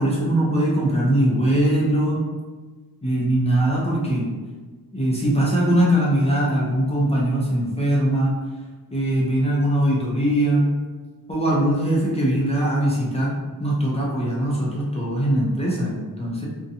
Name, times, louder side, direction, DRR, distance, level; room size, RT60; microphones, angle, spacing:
voice 1, 0.0-2.2 3.0-4.3 4.9-8.3 8.9-10.7 11.3-13.3 13.6-16.4, right 1 dB, 15° left, -6 dB, 0.5 m, -21 dB
2.6 x 2.2 x 2.7 m, 1.4 s
wide cardioid pair, 120°, 38 cm